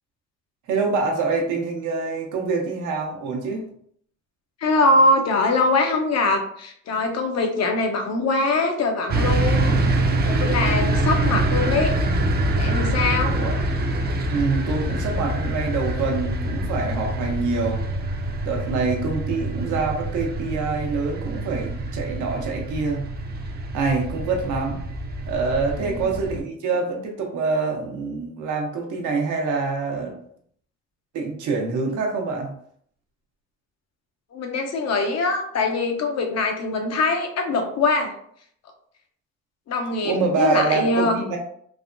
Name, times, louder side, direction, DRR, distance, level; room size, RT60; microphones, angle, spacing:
voice 1, 0.7-3.7 13.4-13.6 14.3-17.8 18.4-23.1 23.7-24.8 25.3-30.2 31.1-32.5 40.0-41.4, right 4 dB, 85° right, 1 dB, 0.8 m, -25 dB
voice 2, 4.6-9.9 10.3-11.9 12.6-13.4 25.8-26.1 34.3-38.1 39.7-41.2, left 2 dB, 60° left, 4 dB, 0.7 m, -22 dB
sound 1, 9.1-26.4, right 1 dB, 35° right, 0.5 m, -25 dB
3.3 x 2.1 x 2.5 m, 0.64 s
cardioid pair, 90°, 30 cm